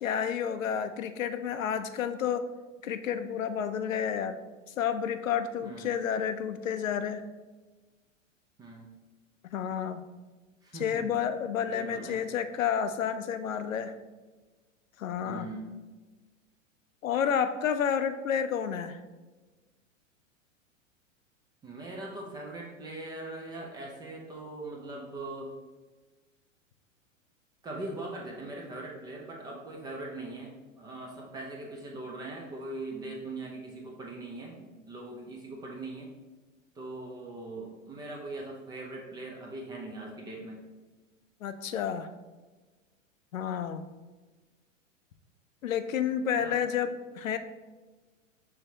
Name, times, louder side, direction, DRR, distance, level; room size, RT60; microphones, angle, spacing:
voice 1, 0.0-2.5 2.8-4.4 4.8-7.3 9.5-10.0 10.8-13.9 15.0-15.5 17.0-19.0 41.4-42.1 43.3-43.8 45.6-47.4, left 8 dB, 80° left, 10 dB, 0.5 m, -30 dB
voice 2, 5.6-6.1 8.6-8.9 10.6-11.1 11.7-12.2 15.2-15.8 21.6-25.5 27.6-36.1 36.7-40.7 46.3-46.6, right 2 dB, 10° right, -1 dB, 0.3 m, -41 dB
5.6 x 3.4 x 2.7 m, 1.3 s
figure-of-eight pair, 100°, 39 cm